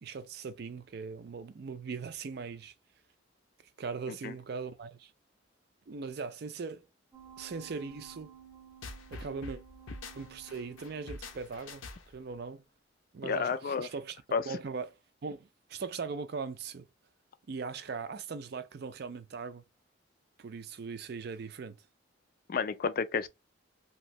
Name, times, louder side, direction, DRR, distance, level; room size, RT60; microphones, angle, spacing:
voice 1, 0.0-2.7 3.8-5.1 5.9-6.9 7.4-8.3 9.1-9.6 10.1-12.6 13.1-14.9 15.2-16.9 17.5-19.6 20.4-21.8, right 5 dB, 55° right, 0.4 m, -40 dB
sound 1, 7.1-11.7 12.1-12.2, right 7 dB, 15° right, 0.7 m, -54 dB
sound 2, 8.8-12.3, left 3 dB, 90° left, 0.6 m, -45 dB
voice 2, 13.2-13.9 14.3-14.4 22.5-23.3, left 5 dB, 45° left, 0.3 m, -30 dB
2.9 x 2.6 x 2.9 m
head